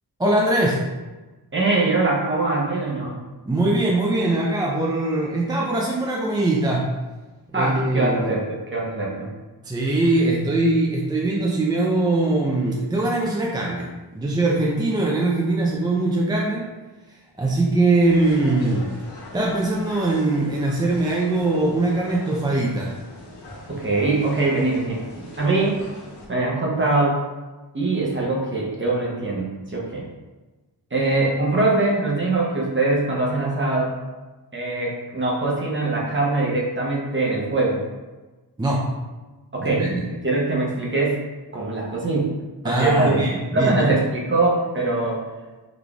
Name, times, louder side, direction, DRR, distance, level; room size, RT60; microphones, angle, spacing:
voice 1, 0.2-0.9 3.5-6.9 7.5-8.4 9.6-13.9 14.1-16.7 17.4-18.9 19.3-22.9 38.6-38.9 39.6-40.0 42.6-43.9, right 2 dB, 10° right, -3 dB, 0.4 m, -21 dB
voice 2, 1.5-3.2 7.5-9.3 23.7-25.0 25.4-25.8 26.3-27.2 27.7-30.1 30.9-33.9 34.5-37.8 39.5-41.2 41.5-42.3 42.6-43.2 43.5-45.3, right 2 dB, 30° right, -4 dB, 0.8 m, -22 dB
sound 1, 18.0-26.3, left 2 dB, 85° left, 1.0 m, -41 dB
4.0 x 3.2 x 2.3 m, 1.2 s
wide cardioid pair, 90°, 39 cm